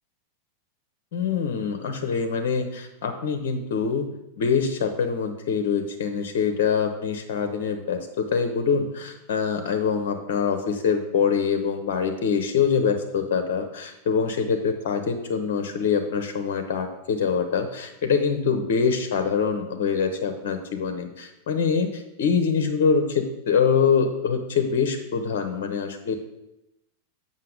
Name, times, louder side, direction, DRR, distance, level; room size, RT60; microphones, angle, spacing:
voice 1, 1.1-4.1 4.4-26.2, left 6 dB, 55° left, 7 dB, 0.8 m, -24 dB
7.8 x 5.5 x 5.1 m, 0.92 s
figure-of-eight pair, 90°, 0 cm